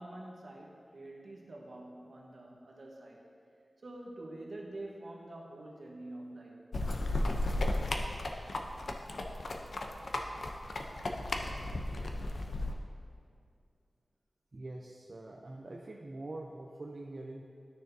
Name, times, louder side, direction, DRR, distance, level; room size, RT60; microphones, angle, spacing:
voice 1, 0.0-3.3 3.8-6.7, right 1 dB, 70° right, -2 dB, 1.3 m, -46 dB
sound 1, 6.7-12.7, left 1 dB, 75° left, 0.6 m, -34 dB
voice 2, 14.5-17.4, right 2 dB, 55° right, -1 dB, 0.5 m, -44 dB
12.5 x 6.5 x 2.7 m, 2.4 s
wide cardioid pair, 80°, 0 cm